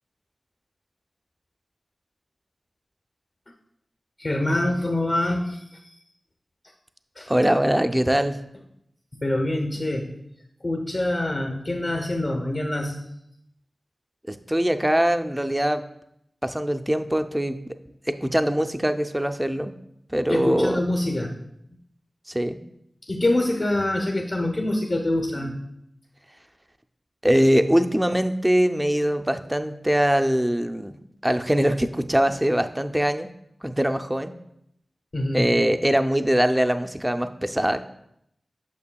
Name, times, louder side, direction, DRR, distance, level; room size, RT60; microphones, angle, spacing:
voice 1, 4.2-6.0 7.2-7.3 9.2-10.1 10.6-13.0 20.3-21.3 23.1-25.6 35.1-35.6, left 1 dB, 50° left, 1 dB, 0.8 m, -25 dB
voice 2, 7.3-8.4 14.3-15.8 16.4-17.6 18.1-19.7 20.1-20.8 22.3-22.6 27.2-30.9 31.2-33.3 33.6-34.3 35.3-37.8, equal, 10° right, 8 dB, 0.4 m, -22 dB
8.5 x 6.5 x 2.3 m, 0.77 s
wide cardioid pair, 75°, 0 cm